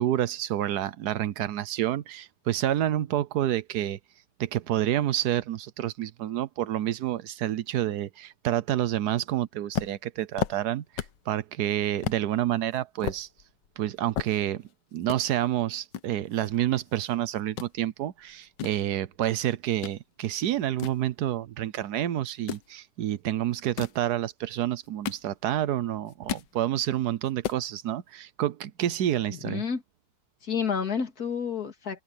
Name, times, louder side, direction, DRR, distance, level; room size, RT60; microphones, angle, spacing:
voice 1, 0.0-4.0 4.4-13.3 13.8-29.6, right 12 dB, 65° right, 1.1 m, -29 dB
sound 1, 9.7-11.3 11.6-11.7 12.0-12.2 12.7-14.7 15.0-15.2 15.9-17.1 17.4-17.7 18.3-20.0 20.4-21.7 22.3-22.7 23.5-24.0 24.7-25.7 26.0-26.5 26.9-27.0 27.2-27.6, left 10 dB, 65° left, 1.4 m, -35 dB
voice 2, 29.3-29.8 30.4-32.0, left 6 dB, 45° left, 2.8 m, -30 dB
omnidirectional pair, 2.3 m